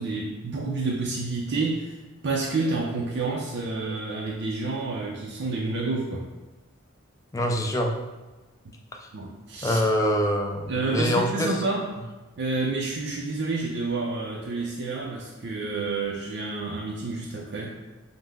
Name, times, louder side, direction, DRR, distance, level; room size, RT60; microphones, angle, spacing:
voice 1, 0.0-6.2 9.1-9.8 10.7-11.9 12.4-17.7, right 3 dB, 55° right, -2 dB, 0.4 m, -29 dB
voice 2, 7.3-7.9 9.0-9.1 9.6-11.5, equal, 15° left, 2 dB, 0.4 m, -25 dB
5.4 x 2.0 x 3.5 m, 1.2 s
head